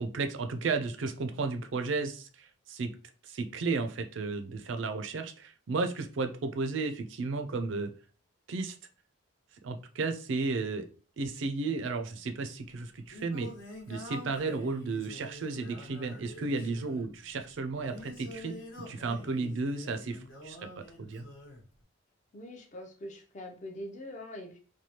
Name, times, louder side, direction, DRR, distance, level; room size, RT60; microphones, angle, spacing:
voice 1, 0.0-2.9 3.3-7.9 8.5-8.7 9.6-10.9 11.2-13.5 13.9-18.5 18.9-20.6 21.0-21.2, right 3 dB, 65° right, 7 dB, 0.4 m, -33 dB
Singing, 12.6-21.6, left 1 dB, 70° left, 1.1 m, -47 dB
voice 2, 22.3-24.6, left 1 dB, 35° left, 2 dB, 0.5 m, -43 dB
3.2 x 2.2 x 2.8 m, 0.40 s
head